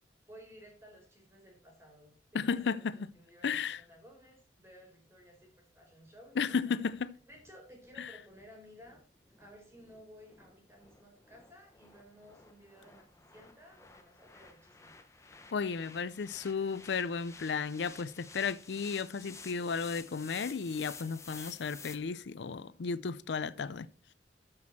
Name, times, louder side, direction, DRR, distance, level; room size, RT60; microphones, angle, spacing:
voice 1, 0.3-6.8 7.3-9.0 9.4-14.9, equal, 15° right, 4.3 m, -56 dB
voice 2, 2.3-3.1 3.4-3.8 6.4-7.2 8.0-8.1 15.5-23.9, left 5 dB, 90° left, 0.5 m, -34 dB
sound 1, 6.9-22.0, left 4 dB, 15° left, 0.9 m, -53 dB
13.5 x 6.3 x 4.2 m
head